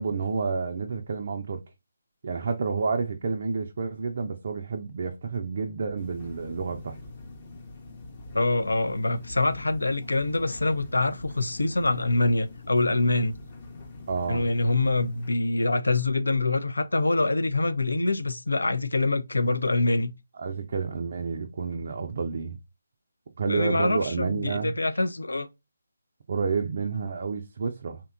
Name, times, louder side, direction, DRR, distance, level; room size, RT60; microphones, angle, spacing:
voice 1, 0.0-1.6 2.2-7.0 14.1-14.5 20.4-22.6 23.4-24.8 26.3-28.0, right 5 dB, 50° right, 0.4 m, -30 dB
sound 1, 6.0-15.3, left 2 dB, 30° left, 0.6 m, -44 dB
voice 2, 8.3-13.3 14.3-20.1 23.5-25.5, left 2 dB, 80° left, 0.4 m, -25 dB
2.8 x 2.2 x 2.3 m
figure-of-eight pair, 155°, 0 cm